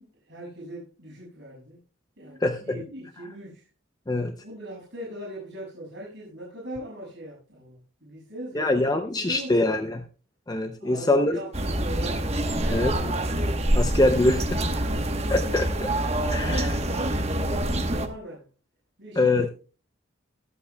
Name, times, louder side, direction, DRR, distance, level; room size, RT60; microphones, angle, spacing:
voice 1, 0.0-1.8 2.2-3.7 4.4-9.9 10.8-13.1 14.2-14.9 16.4-18.5 19.0-19.4, equal, 55° right, 7.1 m, -39 dB
voice 2, 2.4-2.8 4.1-4.3 8.5-10.0 10.5-11.4 12.7-12.9 13.7-14.3 15.3-15.9 16.3-16.7 19.2-19.5, left 2 dB, 20° left, 0.5 m, -23 dB
sound 1, 11.5-18.1, right 1 dB, 30° right, 1.1 m, -26 dB
23.0 x 8.3 x 2.3 m
head